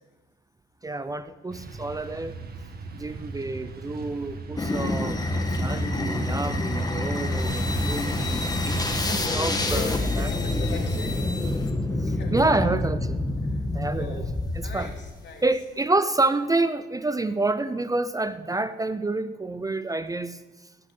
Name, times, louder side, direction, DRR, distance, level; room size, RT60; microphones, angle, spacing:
voice 1, 0.8-2.3 2.9-5.2 5.6-9.1 9.3-10.6 12.0-13.0 13.7-14.2 14.6-14.9 15.4-20.7, right 2 dB, 15° right, 13 dB, 0.6 m, -28 dB
sound 1, 1.5-10.0, right 3 dB, 50° right, 1.8 m, -37 dB
sound 2, 4.6-15.1, left 2 dB, 20° left, 1.7 m, -27 dB
voice 2, 9.0-12.7 13.4-14.3 14.6-15.5, left 4 dB, 60° left, 2 dB, 3.3 m, -41 dB
16.5 x 6.4 x 8.5 m, 1.2 s
cardioid pair, 90°, 20 cm